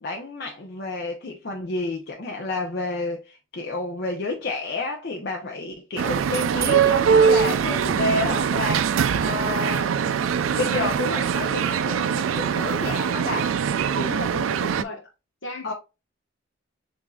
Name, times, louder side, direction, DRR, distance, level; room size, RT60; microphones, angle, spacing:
voice 1, 0.0-10.2 10.5-13.5 15.6-15.7, left 2 dB, 55° left, 0.6 m, -30 dB
sound 1, 6.0-14.8, right 7 dB, 85° right, 0.3 m, -22 dB
voice 2, 13.9-15.1 15.4-15.7, left 1 dB, 75° left, 1.1 m, -35 dB
7.0 x 2.6 x 2.3 m
head